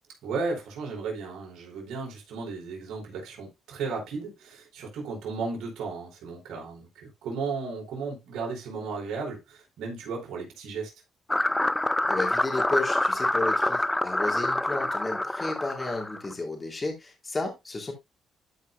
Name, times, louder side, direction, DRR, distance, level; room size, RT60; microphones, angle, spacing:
voice 1, 0.2-10.9, right 4 dB, 80° right, 4.3 m, -35 dB
sound 1, 11.3-16.3, left 1 dB, 10° left, 0.4 m, -26 dB
voice 2, 12.1-17.9, left 2 dB, 25° left, 3.0 m, -32 dB
12.5 x 5.4 x 2.4 m
cardioid pair, 90°, 0 cm